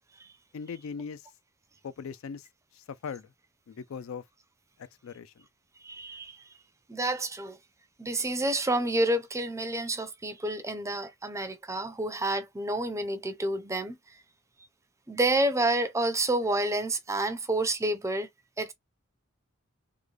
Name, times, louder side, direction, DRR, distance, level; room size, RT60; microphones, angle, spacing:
voice 1, 0.5-1.2 1.8-2.5 2.7-3.3 3.7-4.2 5.0-5.5, left 6 dB, 70° left, 0.4 m, -39 dB
voice 2, 5.8-6.4 6.9-7.6 8.0-14.0 15.1-18.3 18.6-18.7, right 2 dB, 15° right, 0.5 m, -29 dB
3.7 x 2.1 x 3.2 m
head